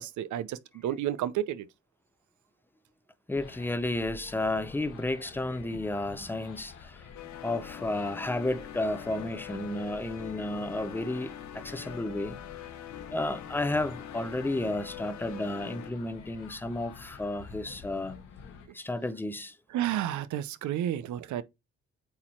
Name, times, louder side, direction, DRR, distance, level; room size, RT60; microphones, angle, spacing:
voice 1, 0.0-1.7 19.7-21.4, right 11 dB, 75° right, 0.7 m, -31 dB
sound 1, 3.3-18.7, left 6 dB, 90° left, 1.6 m, -49 dB
voice 2, 3.3-7.1 7.4-12.4 13.1-18.2 18.7-19.6, left 2 dB, 5° left, 0.6 m, -32 dB
sound 2, 7.1-15.9, left 10 dB, 65° left, 0.9 m, -44 dB
8.4 x 2.9 x 4.4 m
cardioid pair, 90°, 30 cm